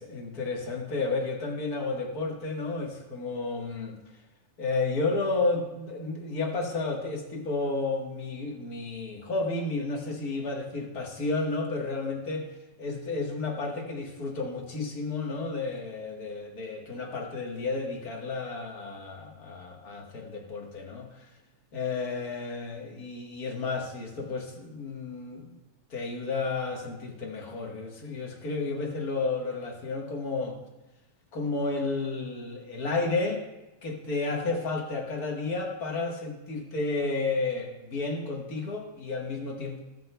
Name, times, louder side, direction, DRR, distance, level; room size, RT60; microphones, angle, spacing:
voice 1, 0.1-4.0 4.6-12.5 12.8-21.3 21.7-25.5 25.9-30.6 31.3-33.4 33.8-39.8, left 3 dB, 45° left, 0 dB, 1.2 m, -32 dB
22.0 x 7.6 x 2.2 m, 0.99 s
omnidirectional pair, 3.4 m